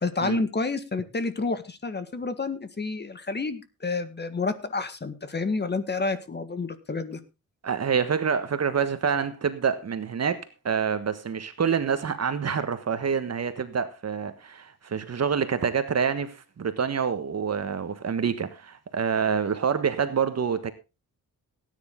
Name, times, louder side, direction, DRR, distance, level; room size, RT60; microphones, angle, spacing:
voice 1, 0.0-7.2, left 3 dB, 30° left, 1.7 m, -29 dB
voice 2, 7.6-20.7, right 6 dB, 45° right, 1.4 m, -27 dB
18.0 x 9.8 x 3.7 m
wide cardioid pair, 145°, 35 cm